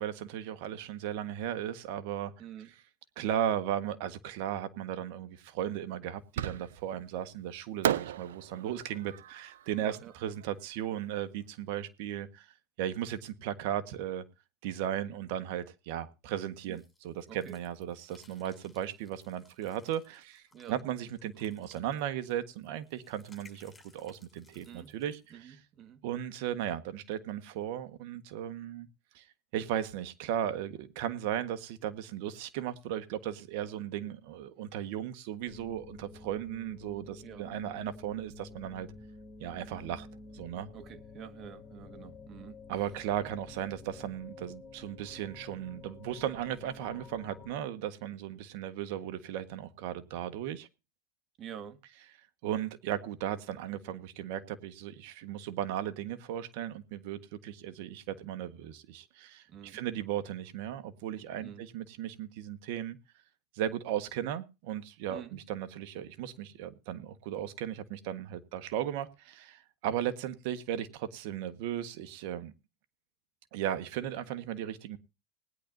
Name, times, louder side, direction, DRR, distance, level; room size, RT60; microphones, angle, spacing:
voice 1, 0.0-2.3 3.2-12.5 12.8-14.2 14.6-25.5 26.0-28.9 29.1-29.2 29.5-38.9 39.4-40.1 40.3-40.7 42.7-50.7 52.4-63.0 63.5-72.5 73.5-75.0, right 11 dB, 70° right, 1.4 m, -36 dB
voice 2, 2.4-2.7 9.8-10.1 16.7-16.8 17.3-17.6 20.5-20.8 24.6-24.9 25.3-26.0 37.2-37.5 40.7-42.6 43.2-43.3 51.4-51.8 59.5-59.8 61.4-61.7 65.1-65.4, right 8 dB, 40° right, 1.7 m, -47 dB
Fireworks, 6.4-7.0 7.8-11.0, right 10 dB, 85° right, 0.6 m, -35 dB
sound 1, 16.6-25.3, left 3 dB, 10° left, 7.3 m, -63 dB
sound 2, 35.5-47.6, left 4 dB, 30° left, 3.8 m, -50 dB
20.0 x 10.5 x 2.7 m
hypercardioid pair, 105°, 0 cm